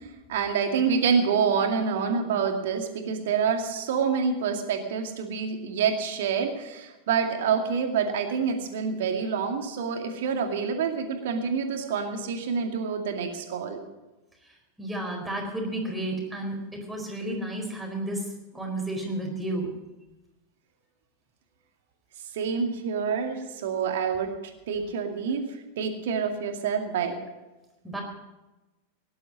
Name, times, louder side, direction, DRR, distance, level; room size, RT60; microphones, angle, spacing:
voice 1, 0.3-13.8 22.3-24.3 24.7-27.2, right 6 dB, 55° right, 4 dB, 2.3 m, -27 dB
voice 2, 14.8-18.2 18.5-19.7 27.8-28.0, right 1 dB, 5° right, 1 dB, 4.4 m, -32 dB
17.5 x 11.5 x 5.5 m, 1.1 s
figure-of-eight pair, 90°, 0 cm